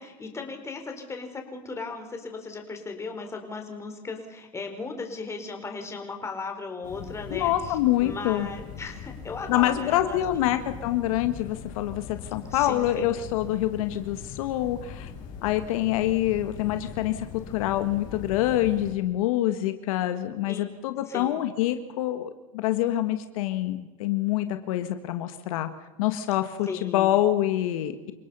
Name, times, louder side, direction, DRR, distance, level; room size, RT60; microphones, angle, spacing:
voice 1, 0.0-10.5 12.5-13.1 20.5-20.7 21.1-21.3 26.7-27.3, left 4 dB, 15° left, 4 dB, 4.2 m, -37 dB
sound 1, 6.8-18.9, left 7 dB, 50° left, 5.3 m, -41 dB
voice 2, 7.3-8.5 9.5-15.1 15.4-25.7 26.0-28.1, left 13 dB, 75° left, 9 dB, 1.6 m, -26 dB
28.5 x 18.0 x 5.6 m, 1.2 s
supercardioid pair, 135°, 18 cm